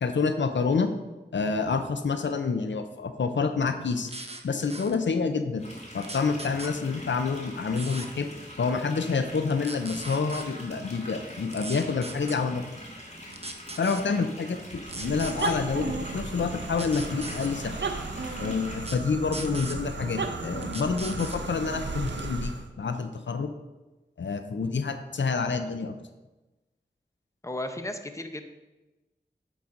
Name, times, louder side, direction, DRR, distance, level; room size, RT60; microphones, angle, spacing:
voice 1, 0.0-0.9 1.3-4.1 4.4-5.6 5.9-8.3 8.6-12.7 13.8-17.8 18.4-23.5 24.2-26.0, left 5 dB, 85° left, 8 dB, 0.5 m, -28 dB
sound 1, 4.1-4.4 4.7-5.0 6.0-6.7 7.8-8.1 9.4-10.5 11.5-12.4 13.3-14.0 14.9-15.6 16.7-17.5 18.8-19.0 19.3-19.8 20.6-21.4 22.1-22.3, right 2 dB, 35° right, 0.8 m, -39 dB
sound 2, 5.6-18.8, equal, 35° left, 2.5 m, -44 dB
sound 3, 14.8-22.7, right 3 dB, 80° right, 0.7 m, -35 dB
voice 2, 27.4-28.4, left 1 dB, 15° left, 7 dB, 0.7 m, -34 dB
8.5 x 4.0 x 5.1 m, 1.1 s
wide cardioid pair, 45°, 19 cm